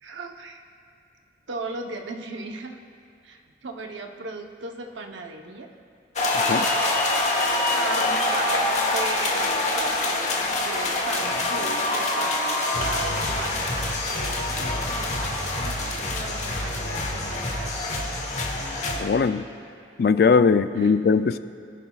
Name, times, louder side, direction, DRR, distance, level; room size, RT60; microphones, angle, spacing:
voice 1, 0.0-0.6 1.5-2.8 3.2-5.7 7.7-17.8 20.7-20.9, right 3 dB, 85° right, 3 dB, 0.9 m, -37 dB
sound 1, 6.2-19.0, left 2 dB, 40° left, 1.1 m, -25 dB
voice 2, 19.0-19.5 20.0-21.4, left 5 dB, 55° left, 13 dB, 0.3 m, -19 dB
21.5 x 11.0 x 2.4 m, 2.4 s
head